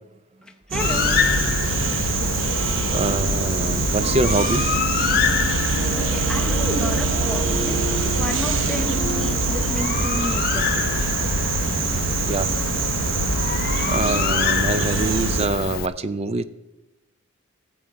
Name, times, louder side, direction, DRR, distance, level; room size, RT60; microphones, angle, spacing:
voice 1, 0.7-1.3 5.9-10.7, left 1 dB, 5° left, 1 dB, 0.7 m, -32 dB
sound 1, 0.7-15.5, right 5 dB, 65° right, 0.7 m, -24 dB
Bird, 0.8-15.9, left 7 dB, 45° left, 0.3 m, -26 dB
voice 2, 2.9-4.7 12.3-12.5 13.9-16.4, right 3 dB, 30° right, 14 dB, 0.4 m, -24 dB
sound 2, 4.0-9.3, right 2 dB, 85° right, 1.4 m, -32 dB
14.0 x 7.7 x 4.6 m, 0.99 s
head